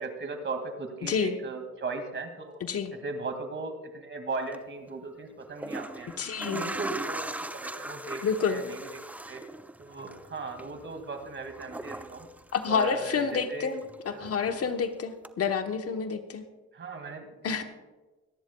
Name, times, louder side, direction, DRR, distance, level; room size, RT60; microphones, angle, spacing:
voice 1, 0.0-2.6 2.9-6.1 6.4-8.9 9.3-9.4 9.8-12.3 12.7-13.7 14.1-14.3 16.7-17.6, right 3 dB, 40° right, 6 dB, 2.1 m, -37 dB
voice 2, 1.0-1.4 2.6-2.9 6.2-6.7 8.2-8.6 12.5-13.8 14.0-16.4 17.4-17.6, left 6 dB, 50° left, 7 dB, 1.0 m, -28 dB
sound 1, 4.4-4.6 5.4-13.4 13.7-14.8 15.2-15.3, right 1 dB, 5° right, 0.5 m, -40 dB
24.5 x 10.5 x 2.3 m, 1.2 s
cardioid pair, 90°, 30 cm